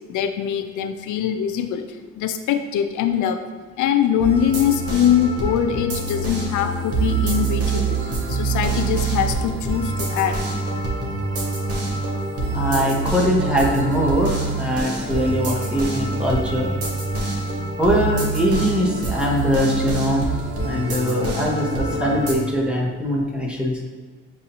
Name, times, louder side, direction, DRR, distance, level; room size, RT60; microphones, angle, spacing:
voice 1, 0.1-1.8 2.2-3.4 3.8-8.0 8.3-10.4, left 9 dB, 80° left, 8 dB, 0.5 m, -22 dB
sound 1, 4.2-22.3, right 3 dB, 50° right, 1.1 m, -25 dB
voice 2, 12.5-16.7 17.8-20.2 20.6-23.8, equal, 5° right, -3 dB, 1.1 m, -22 dB
7.0 x 2.7 x 2.8 m, 1.5 s
cardioid pair, 90°, 30 cm